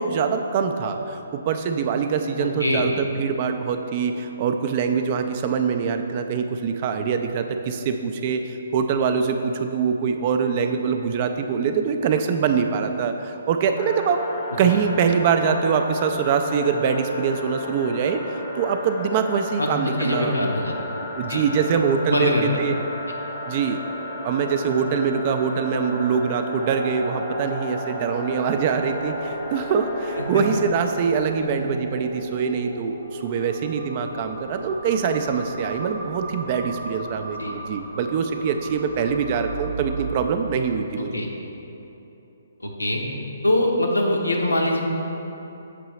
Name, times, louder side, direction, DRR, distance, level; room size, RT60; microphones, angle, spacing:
voice 1, 0.0-14.2 14.6-20.4 21.2-22.7 23.5-23.8 24.2-41.2, right 6 dB, 35° right, 6 dB, 0.3 m, -24 dB
voice 2, 2.4-2.8 14.7-14.8 19.6-19.7 20.0-20.7 21.3-21.4 22.1-22.4 30.2-30.4 31.4-31.5 37.4-37.5 41.1-41.3 42.6-43.0 43.4-44.8, left 1 dB, 85° left, 0 dB, 0.8 m, -23 dB
sound 1, 13.8-31.1, left 1 dB, 30° left, 0.4 m, -34 dB
sound 2, 26.6-40.2, right 1 dB, 55° right, 0.7 m, -36 dB
6.7 x 4.6 x 3.0 m, 3.0 s
figure-of-eight pair, 135°, 0 cm